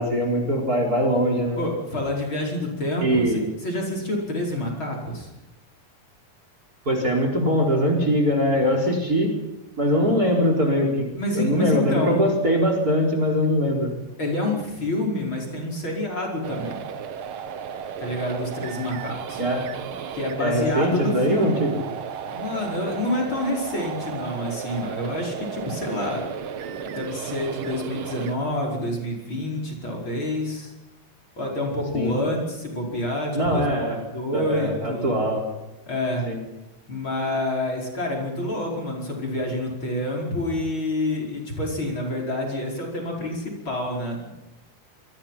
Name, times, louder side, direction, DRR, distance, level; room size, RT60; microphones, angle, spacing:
voice 1, 0.0-1.6 3.0-3.4 6.9-9.3 9.8-11.0 11.3-13.9 19.4-19.6 20.4-21.8 31.9-32.1 33.4-34.0 34.3-35.4 36.3-36.4, equal, 25° right, 3 dB, 4.7 m, -22 dB
voice 2, 1.5-5.3 11.1-12.2 14.2-16.9 18.0-19.4 20.1-21.6 22.2-26.2 26.8-30.7 31.4-33.8 34.1-35.1 35.9-36.2 36.9-44.3, left 1 dB, 35° left, -1 dB, 5.7 m, -28 dB
sound 1, 16.4-28.4, right 8 dB, 55° right, 1.6 m, -34 dB
27.5 x 23.0 x 5.8 m, 0.99 s
omnidirectional pair, 3.7 m